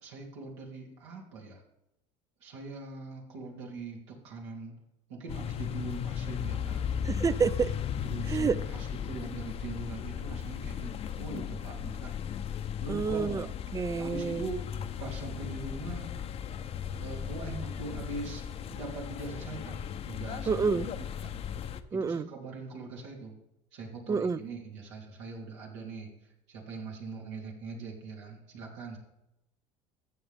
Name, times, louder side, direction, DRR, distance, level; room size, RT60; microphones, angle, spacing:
voice 1, 0.0-1.6 2.4-4.7 5.1-6.9 8.0-12.1 12.8-13.5 14.0-14.7 15.0-16.1 17.0-18.4 18.7-20.9 21.2-21.4 21.9-23.3 23.7-26.1 26.5-29.0, right 3 dB, 85° right, -1 dB, 3.0 m, -42 dB
sound 1, 5.3-21.8, left 8 dB, 45° left, 0.8 m, -36 dB
voice 2, 7.0-7.7 8.3-8.5 12.9-13.4 13.7-14.4 20.5-20.9 21.9-22.3 24.1-24.4, right 5 dB, 25° right, 18 dB, 0.5 m, -28 dB
14.0 x 8.0 x 3.5 m, 0.87 s
supercardioid pair, 85°, 15 cm